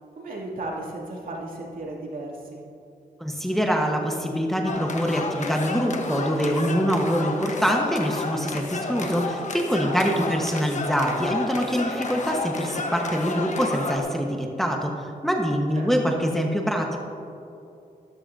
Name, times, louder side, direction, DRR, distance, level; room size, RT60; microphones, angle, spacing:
voice 1, 0.2-2.6 9.8-10.2 15.7-15.9, right 2 dB, 65° right, -3 dB, 2.7 m, -35 dB
voice 2, 3.2-17.0, equal, ahead, 0 dB, 1.3 m, -24 dB
sound 1, 4.7-14.0, left 3 dB, 50° left, 1.2 m, -31 dB
14.0 x 13.0 x 2.8 m, 2.7 s
cardioid pair, 80°, 15 cm